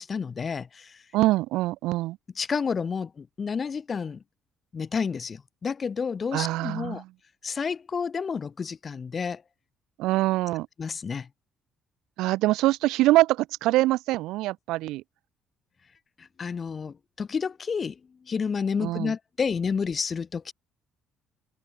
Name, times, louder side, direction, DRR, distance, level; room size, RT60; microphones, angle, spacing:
voice 1, 0.0-1.0 2.4-4.2 4.7-7.0 7.4-9.4 10.8-11.3 16.2-18.0 18.3-20.5, left 6 dB, 40° left, 1.5 m, -30 dB
voice 2, 1.1-2.2 6.3-7.1 10.0-10.7 12.2-15.0 18.8-19.1, right 17 dB, 75° right, 0.8 m, -24 dB
open air
hypercardioid pair, 60°, 0 cm